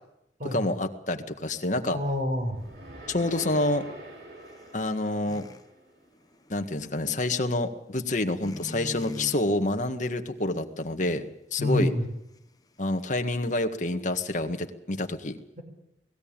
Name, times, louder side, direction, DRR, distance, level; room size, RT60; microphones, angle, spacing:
voice 1, 0.5-2.0 3.1-3.9 4.7-5.5 6.5-11.3 11.5-11.9 12.8-15.4, left 2 dB, 45° left, 6 dB, 1.7 m, -28 dB
voice 2, 1.8-2.6 11.6-12.0, left 1 dB, 50° right, 4 dB, 5.6 m, -27 dB
sound 1, 1.8-6.1, right 1 dB, 70° right, 6.5 m, -46 dB
sound 2, 2.6-5.7 6.0-7.3 8.2-9.4 9.7-10.3 10.6-10.9, left 1 dB, 20° left, 1.1 m, -42 dB
19.5 x 16.0 x 8.9 m, 0.86 s
head